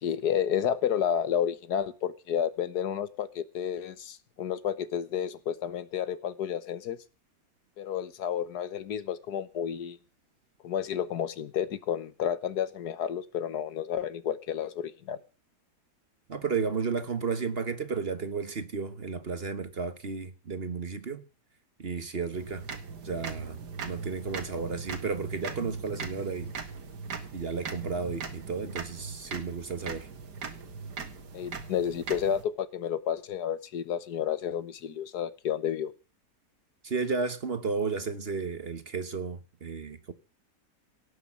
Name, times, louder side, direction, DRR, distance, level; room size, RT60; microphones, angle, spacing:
voice 1, 0.0-7.0 7.8-10.0 10.6-15.2 31.3-35.9, left 9 dB, 75° left, 1.6 m, -31 dB
voice 2, 16.3-21.2 21.8-22.7 23.0-23.6 23.8-26.5 27.3-30.1 36.8-40.1, right 5 dB, 40° right, 1.3 m, -33 dB
sound 1, 22.3-32.4, right 5 dB, 85° right, 2.4 m, -40 dB
18.0 x 7.2 x 7.3 m
omnidirectional pair, 1.7 m